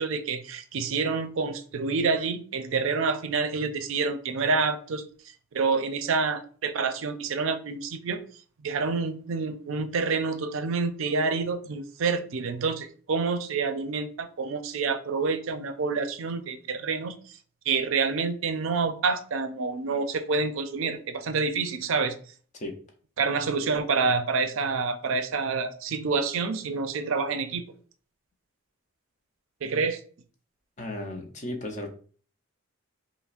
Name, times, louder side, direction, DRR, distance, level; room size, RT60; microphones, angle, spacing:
voice 1, 0.0-5.1 5.5-8.2 8.6-17.2 17.7-22.2 23.2-27.6 29.6-30.0, right 4 dB, 70° right, 9 dB, 0.4 m, -28 dB
voice 2, 30.8-31.9, left 1 dB, 35° left, 3 dB, 0.7 m, -35 dB
5.5 x 2.0 x 2.5 m, 0.43 s
head